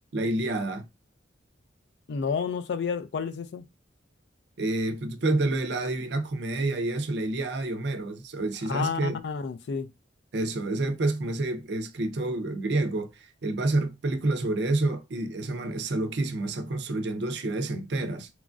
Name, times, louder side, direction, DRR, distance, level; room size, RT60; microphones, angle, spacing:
voice 1, 0.1-0.9 4.6-9.2 10.3-18.3, right 2 dB, 60° right, 0.5 m, -28 dB
voice 2, 2.1-3.6 8.7-9.9, left 6 dB, 60° left, 0.3 m, -30 dB
3.0 x 2.3 x 2.5 m
head